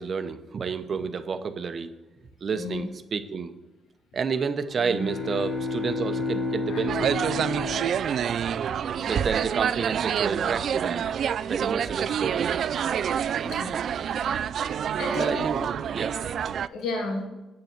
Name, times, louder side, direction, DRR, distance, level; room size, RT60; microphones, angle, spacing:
voice 1, 0.0-1.9 2.4-3.5 4.1-7.1 9.1-11.1 11.4-12.6 15.1-16.5, right 5 dB, 45° right, 9 dB, 0.9 m, -30 dB
voice 2, 2.5-2.9 6.7-6.8 9.0-9.3 13.4-13.9 14.2-14.4 15.0-15.5 16.6-17.2, left 3 dB, 85° left, 0 dB, 2.2 m, -33 dB
sound 1, 4.7-8.8, left 2 dB, 55° left, 2.5 m, -31 dB
sound 2, 6.9-16.7, right 8 dB, 60° right, 0.3 m, -27 dB
8.6 x 6.8 x 6.0 m, 1.0 s
cardioid pair, 90°, 0 cm